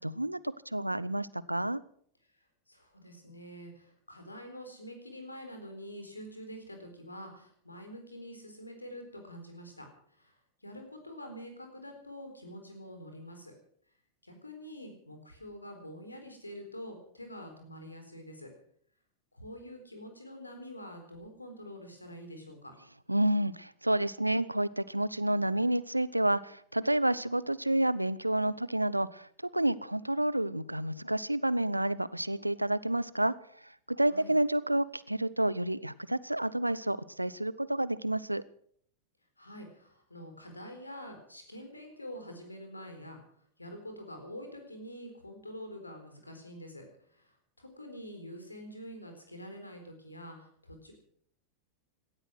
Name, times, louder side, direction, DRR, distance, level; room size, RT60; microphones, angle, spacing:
voice 1, 0.0-1.8 23.1-33.3 33.9-38.4, right 1 dB, 85° right, 19 dB, 0.6 m, -29 dB
voice 2, 2.7-10.3 10.6-13.5 14.2-18.5 19.3-22.7 34.1-34.3 39.4-43.2 43.6-46.8 47.1-50.9, equal, 85° left, 5 dB, 4.1 m, -46 dB
17.5 x 13.0 x 6.3 m, 0.63 s
figure-of-eight pair, 90°, 0 cm